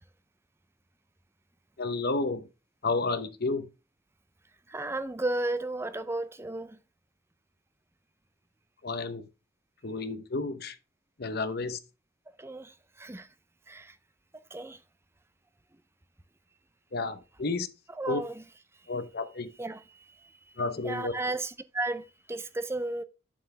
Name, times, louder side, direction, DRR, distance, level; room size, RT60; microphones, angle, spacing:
voice 1, 1.8-2.5 2.8-3.7 8.8-9.3 9.8-10.8 11.2-11.8 16.9-17.7 18.1-18.2 18.9-19.5 20.6-21.1, left 3 dB, 45° left, 0.8 m, -31 dB
voice 2, 4.7-6.8 12.4-13.3 13.7-13.9 14.5-14.8 18.0-18.3 19.6-19.8 20.8-23.0, right 2 dB, 10° right, 0.4 m, -33 dB
7.3 x 6.8 x 3.3 m
head